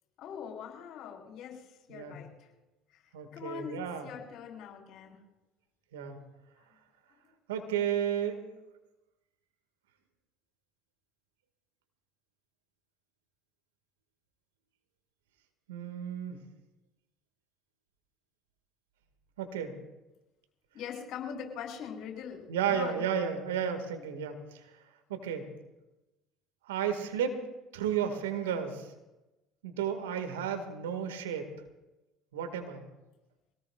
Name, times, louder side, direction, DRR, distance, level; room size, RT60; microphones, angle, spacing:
voice 1, 0.2-2.5 2.9-3.0 3.3-5.2 7.1-7.2 20.7-23.0, left 7 dB, 55° left, -1 dB, 4.7 m, -42 dB
voice 2, 3.1-4.1 5.9-6.2 7.5-8.4 15.7-16.4 19.4-19.8 22.5-24.6 25.1-25.5 26.7-27.4 27.7-28.9 29.6-31.5 32.3-32.8, right 8 dB, 75° right, 7 dB, 2.0 m, -33 dB
25.0 x 18.0 x 2.5 m, 1.0 s
hypercardioid pair, 65°, 0 cm